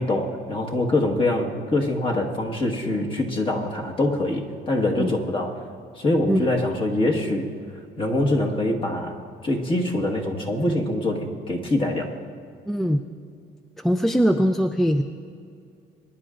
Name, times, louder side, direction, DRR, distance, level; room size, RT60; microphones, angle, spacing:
voice 1, 0.0-5.6 5.9-7.5 8.0-9.2 9.4-12.1, left 1 dB, 30° left, 1 dB, 1.5 m, -24 dB
voice 2, 12.7-13.0 13.8-15.0, equal, ahead, 7 dB, 0.3 m, -21 dB
21.5 x 10.5 x 2.5 m, 2.4 s
cardioid pair, 110°, 17 cm